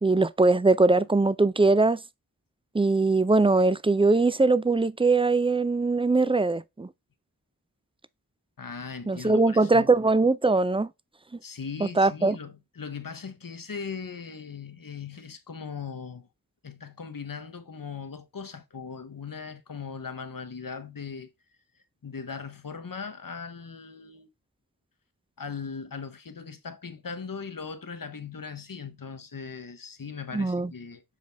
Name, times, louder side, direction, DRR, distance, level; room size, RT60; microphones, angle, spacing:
voice 1, 0.0-2.0 2.7-6.9 9.1-10.9 12.0-12.4 30.3-30.7, right 3 dB, 15° right, 0.4 m, -21 dB
voice 2, 8.6-9.9 11.4-16.3 16.6-21.3 22.0-24.3 25.4-31.0, left 5 dB, 70° left, 1.0 m, -39 dB
7.5 x 4.0 x 3.4 m
wide cardioid pair, 45°, 35 cm